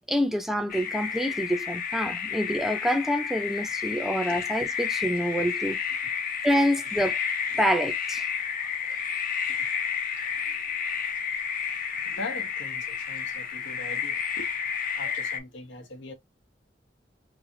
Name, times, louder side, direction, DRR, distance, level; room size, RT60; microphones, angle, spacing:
voice 1, 0.1-5.8 6.4-7.2 7.6-8.2, equal, ahead, 0.5 m, -27 dB
sound 1, 0.7-15.4, left 7 dB, 50° left, 0.7 m, -31 dB
voice 2, 11.7-14.5 15.0-16.1, left 2 dB, 90° left, 1.0 m, -41 dB
3.2 x 2.4 x 3.7 m
head